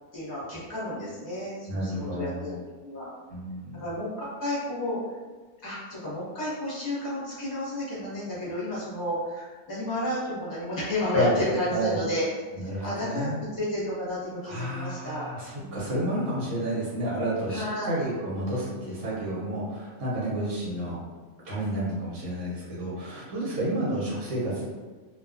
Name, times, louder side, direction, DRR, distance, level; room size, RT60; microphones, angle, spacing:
voice 1, 0.1-2.5 2.8-3.1 3.8-5.0 5.6-12.2 12.8-15.3 15.6-16.1 17.5-18.0, left 1 dB, 15° left, -9 dB, 0.8 m, -31 dB
voice 2, 1.7-2.6 3.3-3.8 11.1-11.4 11.7-12.0 12.5-13.4 14.4-21.0 21.4-24.7, right 1 dB, 70° right, -8 dB, 1.2 m, -30 dB
2.6 x 2.3 x 2.4 m, 1.4 s
omnidirectional pair, 1.6 m